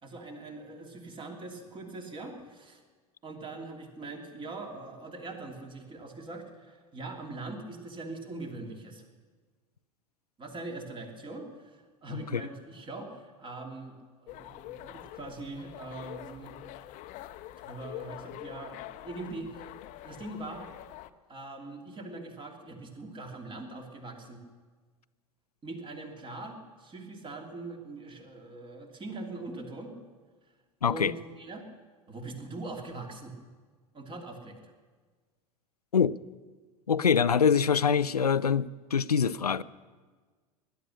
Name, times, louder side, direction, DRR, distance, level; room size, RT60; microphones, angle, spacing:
voice 1, 0.0-2.8 3.2-9.0 10.4-16.6 17.6-19.7 20.0-20.7 21.3-24.4 25.6-29.9 30.9-31.6 32.1-33.4 33.9-34.7, right 2 dB, 25° right, 2 dB, 2.9 m, -42 dB
sound 1, 14.3-21.1, left 14 dB, 40° left, 0.8 m, -45 dB
voice 2, 30.8-31.1 35.9-36.2 36.9-39.6, left 7 dB, 85° left, 18 dB, 0.5 m, -24 dB
19.5 x 11.5 x 6.5 m, 1.5 s
figure-of-eight pair, 80°, 19 cm